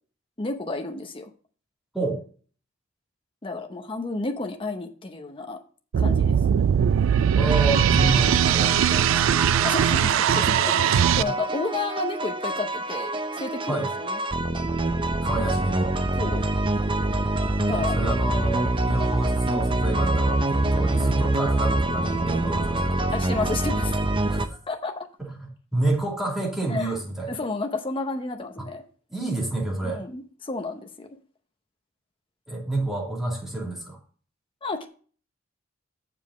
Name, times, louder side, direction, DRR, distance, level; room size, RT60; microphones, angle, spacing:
voice 1, 0.4-1.3 3.4-5.6 6.0-6.4 9.6-13.1 13.4-14.2 16.2-16.4 17.7-18.2 21.9-22.0 23.1-24.0 24.7-25.1 26.7-26.9 27.3-28.8 29.8-31.1 34.6-34.9, left 3 dB, 25° left, 5 dB, 0.8 m, -31 dB
sound 1, 5.9-11.2, right 8 dB, 70° right, 0.3 m, -20 dB
voice 2, 7.4-9.3 11.2-11.3 13.7-13.9 15.2-16.0 17.7-23.1 24.3-24.6 25.2-25.3 25.7-27.3 28.6-28.7 29.1-30.0 32.5-34.0, right 2 dB, ahead, -3 dB, 2.6 m, -29 dB
sound 2, 7.5-24.5, right 2 dB, 25° right, 0.6 m, -26 dB
7.2 x 5.1 x 6.8 m, 0.42 s
head